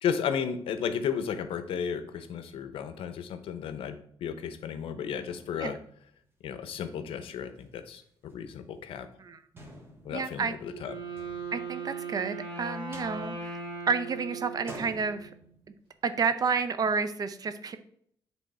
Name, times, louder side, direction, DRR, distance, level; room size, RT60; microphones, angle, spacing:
voice 1, 0.0-3.9 4.2-5.8 6.4-9.1 10.0-10.9, left 7 dB, 80° left, 10 dB, 0.7 m, -33 dB
sound 1, 5.3-6.6 7.1-7.2 7.5-7.6 8.0-8.5 8.8-8.9 9.6-12.3 12.7-14.1 14.4-16.1, right 1 dB, 25° right, 1.3 m, -50 dB
voice 2, 10.1-10.5 11.5-15.3 16.0-17.8, right 5 dB, 45° right, 11 dB, 0.6 m, -30 dB
Wind instrument woodwind instrument, 10.6-15.5, right 4 dB, 75° right, 2.3 m, -39 dB
8.3 x 3.4 x 4.2 m, 0.65 s
cardioid pair, 120°, 9 cm